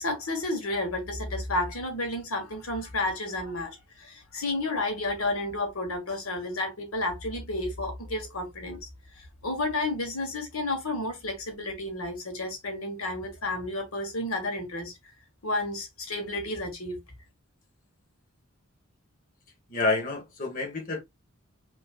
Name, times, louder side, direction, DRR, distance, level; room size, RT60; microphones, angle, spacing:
voice 1, 0.0-8.8 9.2-14.9 15.4-17.0, left 2 dB, 80° left, 1.6 m, -31 dB
voice 2, 19.7-21.0, left 3 dB, 40° left, 1.5 m, -28 dB
5.6 x 3.1 x 2.5 m
head